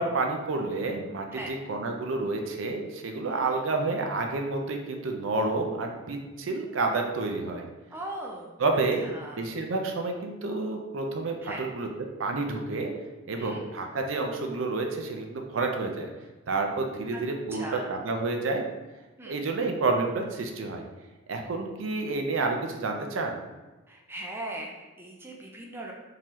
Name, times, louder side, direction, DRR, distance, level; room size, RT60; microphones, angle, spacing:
voice 1, 0.0-7.7 8.6-9.0 9.4-11.9 12.2-12.9 13.3-16.1 16.5-18.6 19.3-20.9 21.3-23.4, right 3 dB, 75° right, 3 dB, 0.5 m, -29 dB
voice 2, 3.2-3.6 7.9-8.5 9.0-9.4 11.4-11.6 13.3-13.6 17.1-17.2 17.5-17.8 19.2-19.4 23.9-25.9, right 1 dB, 10° right, -1 dB, 0.4 m, -39 dB
3.7 x 2.8 x 3.0 m, 1.2 s
head